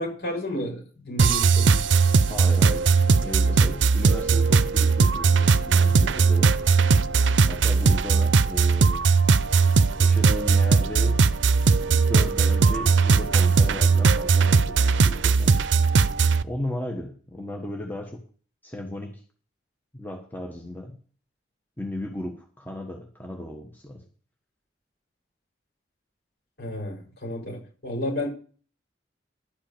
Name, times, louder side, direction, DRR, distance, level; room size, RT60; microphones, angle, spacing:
voice 1, 0.0-1.9 26.6-28.3, left 1 dB, 60° left, -1 dB, 6.4 m, -31 dB
sound 1, 1.2-16.4, right 4 dB, 85° right, 0.5 m, -19 dB
voice 2, 2.3-2.9 3.2-6.6 7.5-9.0 10.0-11.2 11.8-15.5 16.4-18.2 18.6-19.2 19.9-21.0 21.8-24.0, left 1 dB, 10° left, 2 dB, 1.2 m, -35 dB
11.5 x 5.6 x 8.8 m, 0.41 s
head